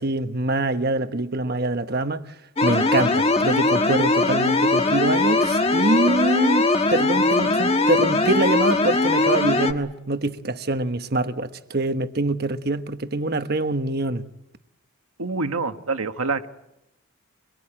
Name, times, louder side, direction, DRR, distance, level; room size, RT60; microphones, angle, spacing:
voice 1, 0.0-2.2 2.6-14.2, right 2 dB, 45° right, 1.2 m, -24 dB
sound 1, 2.6-9.7, left 2 dB, 25° left, 1.4 m, -20 dB
voice 2, 15.2-16.5, right 3 dB, 80° right, 1.5 m, -26 dB
25.0 x 22.0 x 8.9 m
head